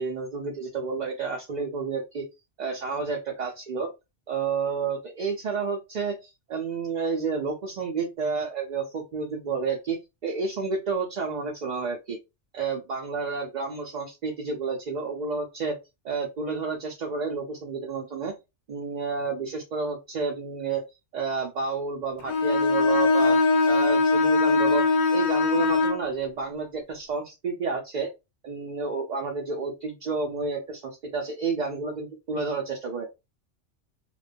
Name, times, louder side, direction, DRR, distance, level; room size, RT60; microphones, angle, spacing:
voice 1, 0.0-2.2 2.6-3.9 4.3-12.2 12.5-15.8 16.0-18.3 18.7-20.8 21.1-23.4 23.6-28.1 28.4-33.1, right 4 dB, 55° right, 0 dB, 0.5 m, -30 dB
Bowed string instrument, 22.3-26.1, left 3 dB, 55° left, 0.5 m, -21 dB
2.4 x 2.2 x 2.5 m, 0.24 s
omnidirectional pair, 1.2 m